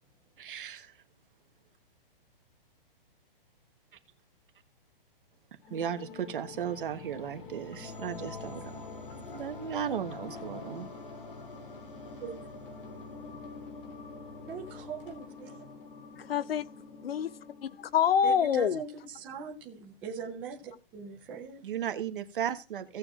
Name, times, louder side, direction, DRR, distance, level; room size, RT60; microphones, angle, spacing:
voice 1, 0.4-0.9 5.7-8.8 9.3-10.9 21.6-23.0, right 9 dB, 60° right, 1.3 m, -35 dB
sound 1, 5.6-18.6, left 4 dB, 65° left, 2.6 m, -45 dB
voice 2, 14.5-15.6 18.2-21.7, right 6 dB, 5° right, 0.5 m, -41 dB
voice 3, 16.2-16.7 17.0-17.3 17.6-18.8, left 8 dB, 85° left, 0.7 m, -26 dB
17.0 x 7.2 x 2.4 m
hypercardioid pair, 175°, 29 cm